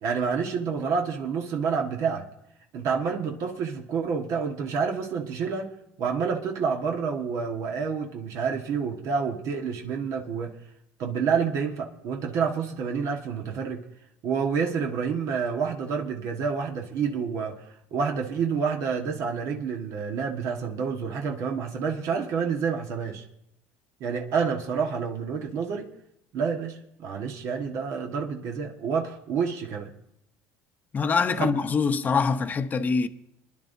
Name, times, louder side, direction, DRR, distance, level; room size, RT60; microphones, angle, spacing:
voice 1, 0.0-2.3 2.7-5.7 6.0-10.5 11.0-13.8 14.2-17.6 17.9-23.2 24.0-25.9 26.3-29.9 31.4-31.5, right 6 dB, 60° right, 1.6 m, -28 dB
voice 2, 30.9-33.1, left 5 dB, 30° left, 0.9 m, -24 dB
26.5 x 11.0 x 2.7 m
supercardioid pair, 105°, 6 cm